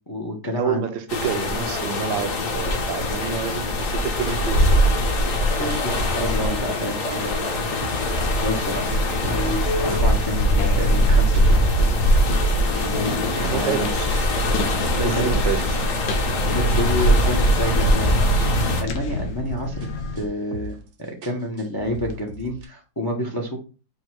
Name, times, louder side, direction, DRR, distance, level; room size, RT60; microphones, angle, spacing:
voice 1, 0.1-0.8 5.6-7.4 8.4-9.0 9.2-11.9 12.7-13.9 15.0-15.3 16.5-18.2 18.8-19.9 20.1-23.6, left 1 dB, 30° left, 0.4 m, -29 dB
voice 2, 0.6-5.0 13.4-14.4 14.9-15.9, right 8 dB, 75° right, 1.3 m, -29 dB
sound 1, 1.1-18.8, equal, 50° left, 1.1 m, -21 dB
sound 2, 3.4-20.3, left 1 dB, 75° left, 1.4 m, -33 dB
sound 3, 4.3-6.8 7.1-8.6 8.9-9.6 9.9-12.4 12.7-15.2 15.6-18.1 18.4-19.9 20.2-20.9 21.2-22.7, equal, 60° right, 0.7 m, -38 dB
5.2 x 2.2 x 4.5 m
omnidirectional pair, 2.0 m